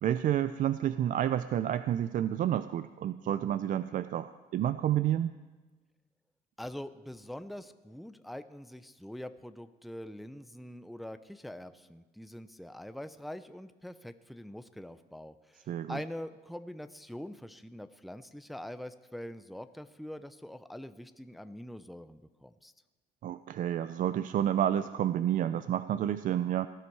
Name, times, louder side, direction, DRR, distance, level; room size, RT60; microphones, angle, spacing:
voice 1, 0.0-5.4 15.7-16.0 23.2-26.7, right 11 dB, 55° right, 13 dB, 0.5 m, -30 dB
voice 2, 6.6-22.7, left 1 dB, ahead, 11 dB, 0.5 m, -44 dB
18.5 x 11.5 x 4.7 m, 1.3 s
cardioid pair, 110°, 17 cm